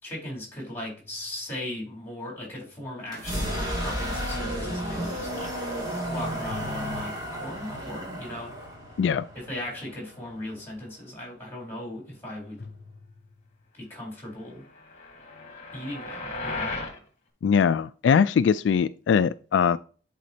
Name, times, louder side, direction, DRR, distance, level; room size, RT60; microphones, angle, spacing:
voice 1, 0.0-5.8 6.1-8.5 9.3-12.7 13.7-14.6 15.7-16.8, left 1 dB, 10° left, 3.7 m, -38 dB
sound 1, 0.8-1.9 6.5-8.1 12.6-13.7, left 3 dB, 55° left, 0.7 m, -47 dB
sound 2, 3.1-10.8, equal, 20° right, 2.2 m, -33 dB
sound 3, 14.7-17.0, left 3 dB, 35° left, 1.4 m, -35 dB
voice 2, 17.4-19.8, left 7 dB, 75° left, 0.3 m, -21 dB
10.5 x 4.2 x 2.8 m
head